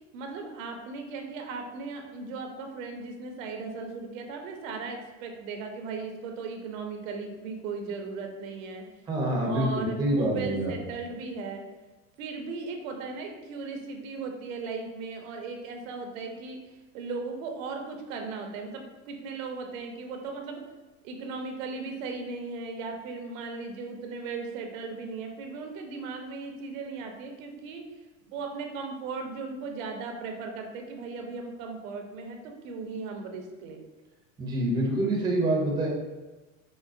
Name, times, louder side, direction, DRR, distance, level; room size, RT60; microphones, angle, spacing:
voice 1, 0.1-8.9 9.4-11.6 12.2-16.6 16.9-20.6 21.0-27.8 28.3-33.8, right 4 dB, 75° right, 4 dB, 0.6 m, -37 dB
voice 2, 9.1-10.7 34.4-35.9, right 1 dB, 10° right, -2 dB, 0.5 m, -26 dB
3.7 x 2.0 x 2.4 m, 1.1 s
supercardioid pair, 115°, 40 cm